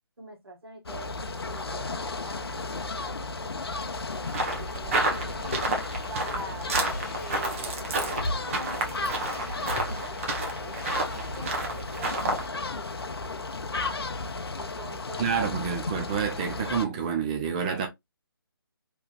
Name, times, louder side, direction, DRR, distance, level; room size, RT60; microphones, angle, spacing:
voice 1, 0.2-4.3 4.6-5.7 6.1-6.7 7.1-10.8 11.3-13.5 14.6-15.2, right 1 dB, 75° right, 1.5 m, -44 dB
sound 1, 0.9-16.9, left 3 dB, 85° left, 0.6 m, -34 dB
sound 2, 4.3-12.5, right 2 dB, 35° right, 0.9 m, -31 dB
sound 3, 4.9-6.0 6.5-11.4, left 1 dB, 40° left, 1.0 m, -38 dB
voice 2, 15.2-17.9, right 7 dB, 20° right, 0.4 m, -28 dB
3.3 x 3.0 x 2.3 m
figure-of-eight pair, 155°, 13 cm